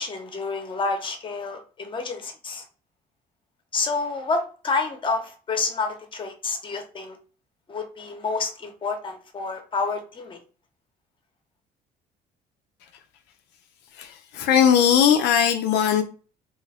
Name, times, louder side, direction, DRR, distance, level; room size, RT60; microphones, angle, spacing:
voice 1, 0.0-2.6 3.7-7.2 7.7-10.4, left 4 dB, 30° left, 0.8 m, -29 dB
voice 2, 14.0-16.0, left 8 dB, 85° left, 0.5 m, -19 dB
2.9 x 2.2 x 3.4 m
cardioid pair, 110°, 17 cm